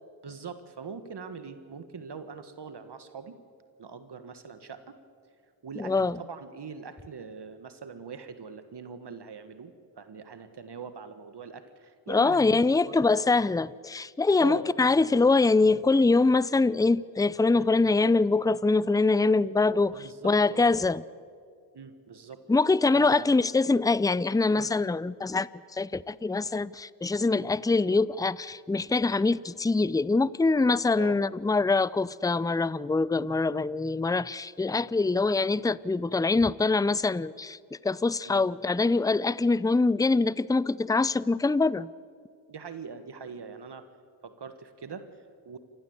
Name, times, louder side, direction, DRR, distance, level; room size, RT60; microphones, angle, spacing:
voice 1, 0.2-3.4 3.8-5.0 5.6-13.2 14.4-14.7 17.5-17.7 19.9-20.8 21.7-22.4 22.9-23.3 24.5-24.7 27.3-27.5 31.0-31.2 38.2-38.4 42.5-43.9 44.2-45.6, right 5 dB, 55° right, 1.7 m, -42 dB
voice 2, 5.8-6.2 12.1-21.0 22.5-37.6 37.8-41.9, left 3 dB, 10° left, 0.5 m, -24 dB
28.5 x 15.0 x 8.1 m
supercardioid pair, 45°, 48 cm